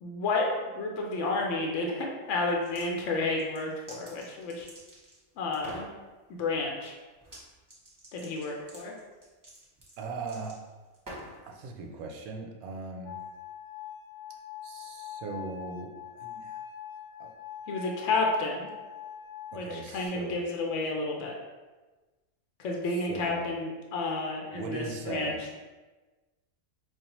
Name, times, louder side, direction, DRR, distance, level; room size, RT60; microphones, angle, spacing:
voice 1, 0.0-4.7 5.4-5.9 6.3-7.0 8.1-8.9 17.7-18.7 19.5-21.3 22.6-25.6, left 3 dB, 65° left, 0 dB, 0.9 m, -31 dB
sound 1, 2.5-2.9 3.3-5.2 5.5-5.9 7.2-7.4 7.7-11.4, right 1 dB, 15° right, 0.8 m, -47 dB
voice 2, 10.0-10.5 11.4-13.2 14.6-15.9 16.2-16.6 17.2-17.3 19.5-20.4 23.1-23.4 24.5-25.4, right 3 dB, 80° right, 2 dB, 1.0 m, -38 dB
sound 2, 13.1-20.1, left 9 dB, 85° left, 1.1 m, -43 dB
4.7 x 2.4 x 2.9 m, 1.2 s
omnidirectional pair, 1.5 m